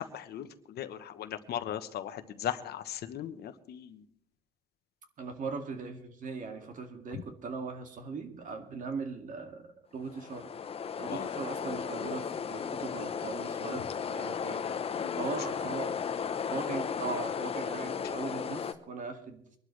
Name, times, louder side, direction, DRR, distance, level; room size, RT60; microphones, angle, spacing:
voice 1, 0.0-4.0 11.1-11.3 15.0-15.2, left 10 dB, 65° left, 10 dB, 1.1 m, -38 dB
voice 2, 5.2-10.5 11.0-15.9 16.5-19.4, right 4 dB, 45° right, 5 dB, 2.2 m, -39 dB
sound 1, 10.0-18.7, left 7 dB, 35° left, 0.9 m, -35 dB
24.5 x 12.0 x 3.3 m, 0.67 s
cardioid pair, 145°, 18 cm